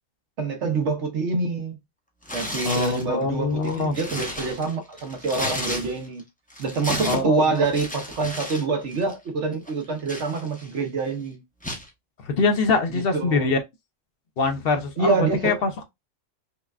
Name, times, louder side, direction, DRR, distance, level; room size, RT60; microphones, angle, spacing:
voice 1, 0.4-1.8 2.3-6.2 6.6-11.4 12.9-13.5 15.0-15.6, right 3 dB, 70° right, 1.2 m, -26 dB
Tearing, 2.2-3.0 3.6-6.2 6.5-8.6 8.9-9.1 9.7-10.8 11.6-11.9, left 1 dB, 10° left, 0.7 m, -33 dB
voice 2, 2.6-4.0 7.0-7.4 12.2-13.6 14.4-15.8, left 4 dB, 55° left, 0.8 m, -24 dB
5.4 x 2.3 x 2.3 m
omnidirectional pair, 1.3 m